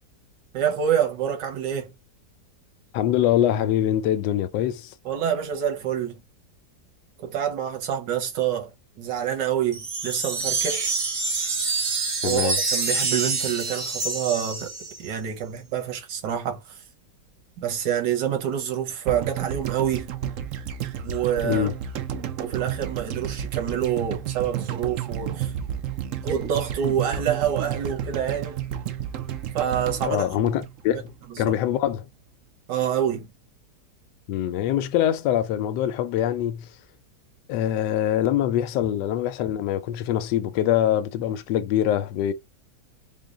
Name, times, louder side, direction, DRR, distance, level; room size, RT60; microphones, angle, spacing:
voice 1, 0.5-1.9 5.0-6.2 7.2-10.9 12.2-14.7 15.0-16.8 17.6-20.1 21.0-21.7 22.4-25.5 26.2-28.6 29.5-30.3 30.9-31.0 31.5-31.6 32.7-33.3, right 9 dB, 90° right, 1.6 m, -27 dB
voice 2, 2.9-4.9 12.2-12.6 21.4-21.7 30.1-32.0 34.3-36.7 37.5-42.3, left 11 dB, 80° left, 1.2 m, -24 dB
sound 1, 9.7-15.1, right 4 dB, 40° right, 1.1 m, -27 dB
sound 2, 19.1-31.3 31.5-31.6, right 9 dB, 65° right, 0.8 m, -31 dB
3.8 x 2.2 x 3.6 m
omnidirectional pair, 1.8 m